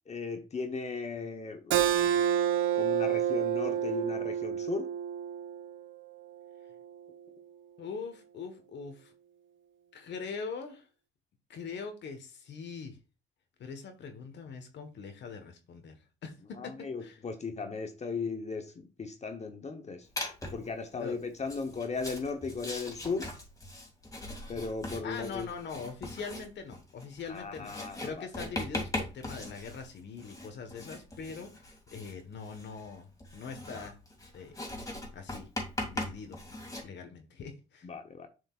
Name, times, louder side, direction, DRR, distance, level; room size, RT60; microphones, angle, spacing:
voice 1, 0.1-1.8 2.7-4.9 16.6-20.1 20.5-23.3 24.5-25.5 27.2-28.3 37.8-38.3, left 4 dB, 35° left, 1.0 m, -36 dB
Keyboard (musical), 1.7-6.9, right 10 dB, 75° right, 0.7 m, -29 dB
voice 2, 7.8-9.1 9.9-10.9 11.5-13.0 13.6-16.0 16.2-16.4 16.6-16.7 17.0-17.2 20.9-21.2 24.9-27.7 28.0-34.0 34.3-34.5 35.1-35.5 35.9-36.4 36.8-37.9, left 5 dB, 65° left, 1.4 m, -42 dB
Writing, 20.2-20.7 21.4-36.8, left 1 dB, 15° left, 2.4 m, -40 dB
7.6 x 5.1 x 2.5 m
cardioid pair, 90°, 20 cm